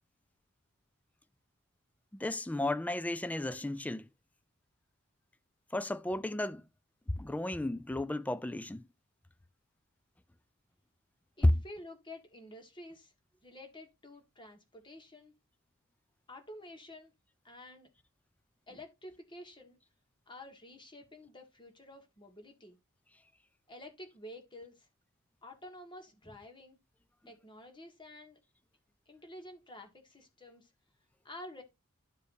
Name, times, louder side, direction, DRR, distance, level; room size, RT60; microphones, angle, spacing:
voice 1, 2.1-4.0 5.7-6.6 7.1-8.8 11.4-11.6, left 1 dB, 5° left, 0.3 m, -32 dB
voice 2, 11.4-13.1 13.4-15.3 16.3-17.1 17.4-17.9 18.7-19.8 20.3-22.8 23.7-24.9 25.4-26.8 27.3-28.4 29.1-30.7 31.2-31.6, left 1 dB, 25° left, 1.8 m, -50 dB
12.5 x 4.8 x 2.7 m
head